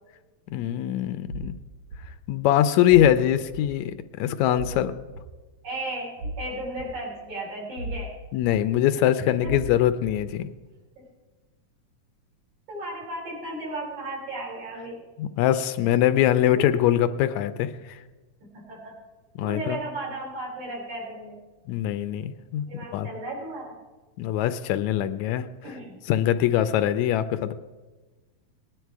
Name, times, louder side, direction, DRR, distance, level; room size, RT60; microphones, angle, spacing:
voice 1, 0.5-1.5 2.3-4.9 8.3-10.5 15.2-17.7 19.4-19.8 21.7-22.7 22.9-23.1 24.2-25.5 26.1-27.5, left 11 dB, 80° left, 12 dB, 1.9 m, -22 dB
sound 1, 1.3-1.5 1.9-2.0 2.9-3.1 3.5-3.7 4.6-4.8 5.1-5.2 6.2-6.4 6.8-6.9 7.8-8.0 8.4-8.5 9.4-9.7 10.0-10.2, right 1 dB, 55° right, 2.1 m, -34 dB
voice 2, 5.6-8.1 9.4-9.5 11.0-11.1 12.7-15.0 16.5-16.8 18.4-18.9 19.4-21.4 22.7-23.8 25.6-26.0, right 1 dB, 75° right, -4 dB, 5.9 m, -35 dB
19.0 x 10.0 x 4.7 m, 1.2 s
omnidirectional pair, 3.4 m